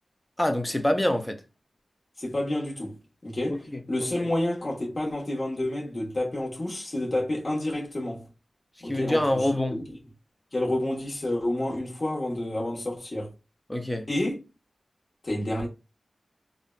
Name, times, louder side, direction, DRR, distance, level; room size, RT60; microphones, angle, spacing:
voice 1, 0.4-1.4 3.5-4.3 8.8-9.8 13.7-14.1, left 1 dB, 15° left, 0.4 m, -26 dB
voice 2, 2.2-8.3 8.8-9.5 10.5-13.3 14.1-14.4 15.2-15.7, left 1 dB, 45° left, 1.1 m, -29 dB
3.6 x 2.1 x 2.2 m
wide cardioid pair, 65°, 0 cm